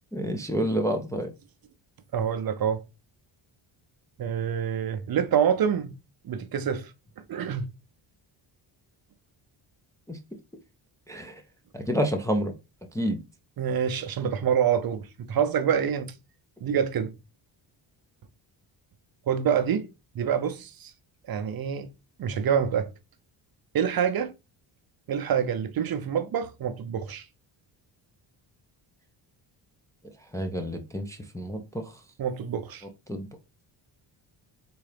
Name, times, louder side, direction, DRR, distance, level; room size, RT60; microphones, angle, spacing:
voice 1, 0.1-1.3 10.1-10.2 11.1-11.4 11.7-12.5 12.9-13.2 30.3-32.0 33.1-33.3, equal, 5° left, 0.4 m, -29 dB
voice 2, 2.1-2.8 4.2-5.9 6.2-6.9 7.2-7.6 13.6-16.1 16.6-17.1 19.3-19.9 20.1-20.9 21.3-21.9 22.2-22.9 23.7-24.3 25.1-27.3 32.2-32.8, right 8 dB, 45° right, 0.5 m, -26 dB
3.7 x 2.3 x 3.3 m
cardioid pair, 85°, 50 cm